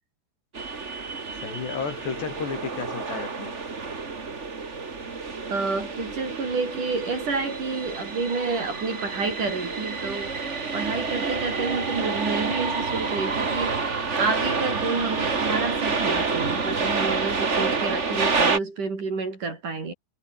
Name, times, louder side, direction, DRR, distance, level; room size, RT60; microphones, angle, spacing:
sound 1, 0.5-18.6, right 4 dB, 70° right, 0.6 m, -28 dB
voice 1, 1.4-3.6, left 5 dB, 70° left, 7.3 m, -32 dB
voice 2, 5.5-10.4 10.7-19.9, right 4 dB, 45° right, 6.5 m, -29 dB
omnidirectional pair, 5.1 m